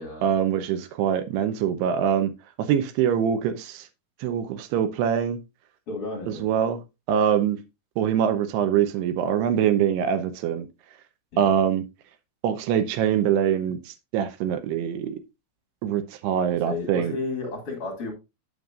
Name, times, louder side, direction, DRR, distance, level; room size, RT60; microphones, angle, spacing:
voice 1, 0.2-2.3 2.6-3.9 4.2-5.4 6.3-6.8 7.1-7.6 8.0-10.7 11.4-11.8 12.4-15.2 15.8-17.1, right 9 dB, 80° right, 2.9 m, -24 dB
voice 2, 5.9-6.5 11.3-11.6 16.5-18.1, left 3 dB, 40° left, 2.7 m, -33 dB
8.9 x 7.8 x 2.5 m
omnidirectional pair, 4.7 m